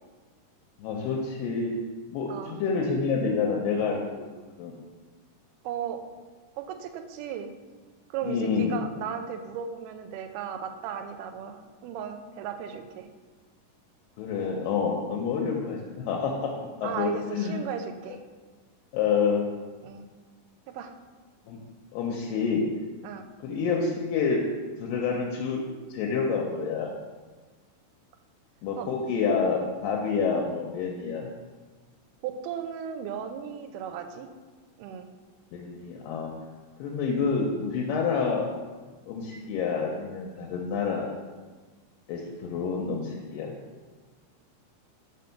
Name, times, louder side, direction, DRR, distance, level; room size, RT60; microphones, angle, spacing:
voice 1, 0.8-1.7 2.1-4.3 4.6-4.7 8.2-8.8 14.2-16.5 16.8-17.6 18.9-19.4 21.5-21.6 21.9-22.6 23.4-24.4 24.8-25.6 25.9-26.9 28.6-31.3 35.5-36.3 36.8-38.5 39.1-41.1 42.1-43.5, left 5 dB, 85° left, -1 dB, 2.3 m, -28 dB
voice 2, 5.6-6.0 6.6-7.5 8.1-13.1 16.8-18.2 19.8-20.1 20.7-20.9 23.0-23.3 28.8-28.9 32.2-34.3 34.8-35.1, right 8 dB, 80° right, 7 dB, 2.0 m, -36 dB
5.2 x 3.8 x 5.7 m, 1.4 s
omnidirectional pair, 3.9 m